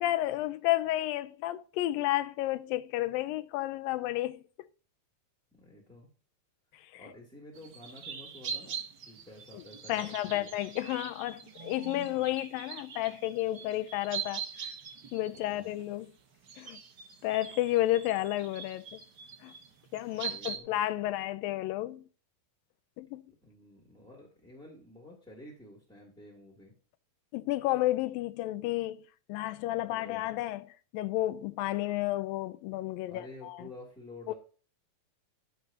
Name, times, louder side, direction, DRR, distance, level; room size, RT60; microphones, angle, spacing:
voice 1, 0.0-4.7 6.8-7.0 9.5-9.6 9.9-14.4 15.1-16.1 16.6-16.8 17.2-19.0 19.4-19.5 19.9-22.1 23.0-23.3 27.3-29.0 29.3-33.7 34.3-34.4, left 15 dB, 85° left, 2.4 m, -32 dB
voice 2, 5.6-6.1 7.0-10.5 12.1-12.3 15.3-15.8 20.1-20.7 23.4-26.7 29.5-30.3 33.1-34.3, left 1 dB, ahead, 2.2 m, -51 dB
sound 1, 7.5-16.0 16.4-20.6, right 7 dB, 85° right, 0.9 m, -42 dB
15.0 x 7.7 x 2.9 m
omnidirectional pair, 4.0 m